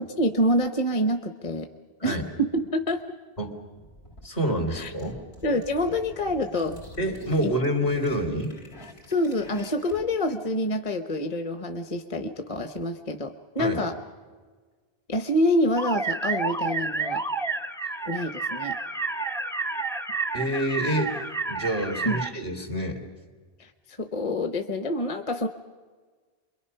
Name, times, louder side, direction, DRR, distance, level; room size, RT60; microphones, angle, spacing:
voice 1, 0.0-1.7 2.0-3.0 4.7-4.9 5.4-6.8 7.4-7.5 9.1-13.9 15.1-17.2 18.1-18.8 22.0-22.2 23.6-25.5, left 1 dB, 35° left, 7 dB, 1.0 m, -27 dB
sound 1, 3.7-10.2, equal, 80° left, 3.3 m, -48 dB
voice 2, 4.2-5.2 7.0-8.5 13.6-13.8 20.3-21.1 21.5-23.0, equal, 60° left, 4 dB, 3.2 m, -27 dB
sound 2, 15.8-22.3, right 4 dB, 5° left, 0.6 m, -30 dB
28.5 x 22.5 x 5.7 m, 1.5 s
omnidirectional pair, 1.1 m